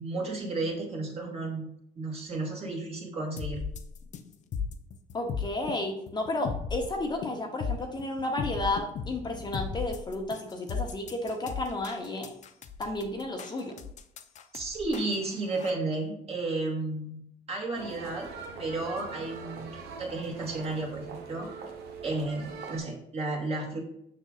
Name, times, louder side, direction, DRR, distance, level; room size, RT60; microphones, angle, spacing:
voice 1, 0.0-1.6 2.0-3.6 14.5-17.2 17.5-18.3 18.6-21.5 22.0-23.8, right 2 dB, 35° right, -1 dB, 2.1 m, -33 dB
sound 1, 3.4-15.7, left 6 dB, 45° left, 0.6 m, -36 dB
voice 2, 5.1-12.3 12.8-13.8, left 2 dB, 25° left, 2 dB, 0.9 m, -32 dB
sound 2, 17.7-22.8, right 5 dB, 75° right, 1.1 m, -42 dB
6.4 x 6.0 x 2.5 m, 0.75 s
cardioid pair, 110°, 17 cm